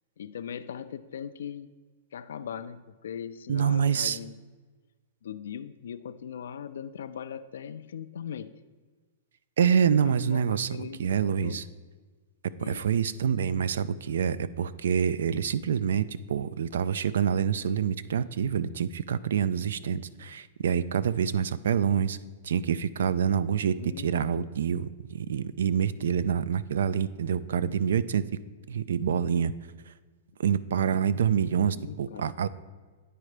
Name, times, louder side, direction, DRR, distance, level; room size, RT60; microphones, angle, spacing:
voice 1, 0.2-1.7 2.1-4.4 5.2-8.6 10.0-11.7 12.6-12.8 23.8-24.2 31.7-32.4, left 8 dB, 85° left, 11 dB, 0.3 m, -40 dB
voice 2, 3.5-4.2 9.6-11.6 12.7-22.2 22.4-28.2 28.7-29.5 30.4-32.5, right 7 dB, 85° right, 16 dB, 0.3 m, -26 dB
9.4 x 4.3 x 4.9 m, 1.4 s
hypercardioid pair, 155°, 0 cm